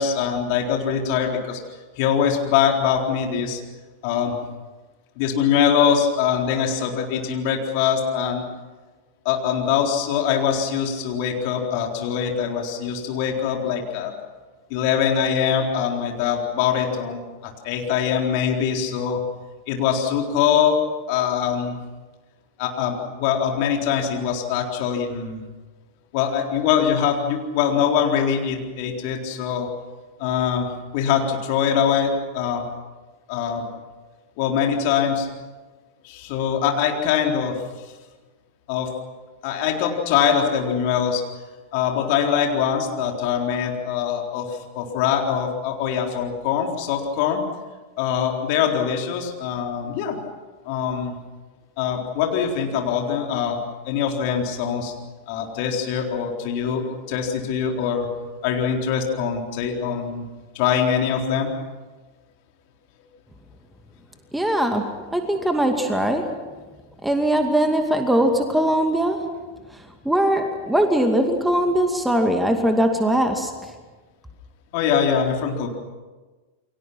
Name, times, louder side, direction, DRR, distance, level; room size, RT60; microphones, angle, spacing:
voice 1, 0.0-1.6 2.0-3.6 4.0-4.4 5.2-8.4 9.2-14.1 14.7-19.2 19.7-20.8 21.1-21.8 22.6-25.4 26.1-29.7 30.2-30.7 30.9-32.6 33.3-33.7 34.4-35.3 36.0-37.6 38.7-38.9 39.4-41.2 41.7-47.4 48.0-50.2 50.6-51.2 51.8-53.6 53.9-54.9 55.3-58.1 58.4-60.3 60.5-61.5 74.7-75.7, left 8 dB, 45° left, 1 dB, 4.0 m, -23 dB
voice 2, 64.3-66.3 67.0-69.2 70.0-73.5, right 1 dB, 5° right, 5 dB, 2.4 m, -21 dB
29.0 x 23.5 x 6.0 m, 1.3 s
figure-of-eight pair, 90°, 0 cm